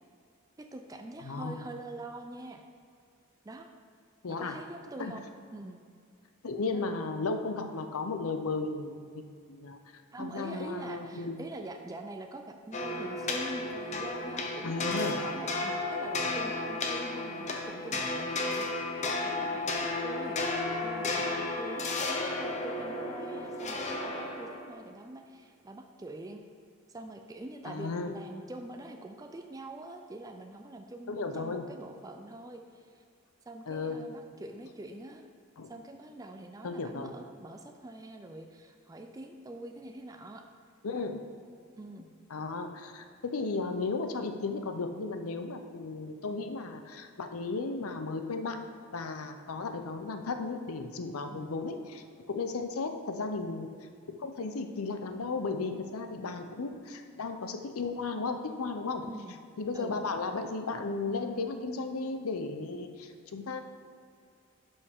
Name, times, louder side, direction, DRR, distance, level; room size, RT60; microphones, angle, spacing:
voice 1, 0.6-2.6 3.4-3.7 4.3-5.2 5.5-5.8 6.7-6.9 10.1-26.4 26.9-33.0 33.5-35.2 35.7-40.4 41.8-42.1 51.3-51.5 59.1-59.4 59.7-60.0, right 2 dB, 15° right, 4 dB, 0.4 m, -44 dB
voice 2, 1.2-1.6 4.2-4.6 5.0-5.1 6.4-9.8 10.2-11.4 14.6-15.2 27.6-28.1 31.1-31.7 33.7-34.0 35.6-35.7 36.6-37.1 40.8-41.2 42.3-48.6 48.9-53.7 54.1-59.0 59.6-63.6, left 3 dB, 80° left, 6 dB, 0.6 m, -35 dB
sound 1, 12.7-24.7, left 2 dB, 30° left, 0.7 m, -33 dB
11.0 x 5.4 x 3.6 m, 2.3 s
head